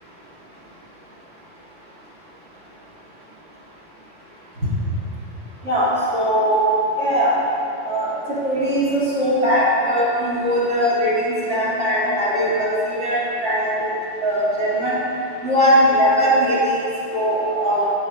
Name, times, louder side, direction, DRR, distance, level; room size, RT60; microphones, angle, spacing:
voice 1, 5.6-6.6 7.0-7.3 7.8-13.9 14.2-15.0 15.4-16.8 17.1-17.9, equal, 70° right, -8 dB, 2.7 m, -20 dB
9.7 x 5.9 x 5.3 m, 2.8 s
omnidirectional pair, 1.3 m